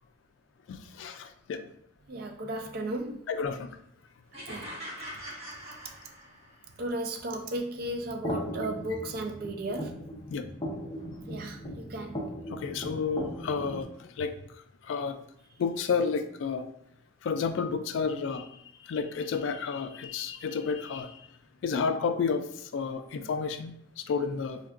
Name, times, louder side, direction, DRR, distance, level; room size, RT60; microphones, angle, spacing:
voice 1, 0.7-1.7 3.3-3.7 5.0-5.2 10.3-10.5 12.5-14.3 14.8-15.2 15.6-16.7 17.2-21.2 21.6-24.6, left 5 dB, 80° left, 8 dB, 0.3 m, -31 dB
voice 2, 2.1-3.2 4.5-4.8 6.8-9.9 11.3-12.2, right 1 dB, 50° right, 4 dB, 0.4 m, -35 dB
sound 1, 4.3-6.6, equal, 35° right, 1.3 m, -42 dB
sound 2, 7.8-13.8, equal, 25° left, 0.5 m, -38 dB
3.5 x 2.2 x 2.4 m, 0.68 s
head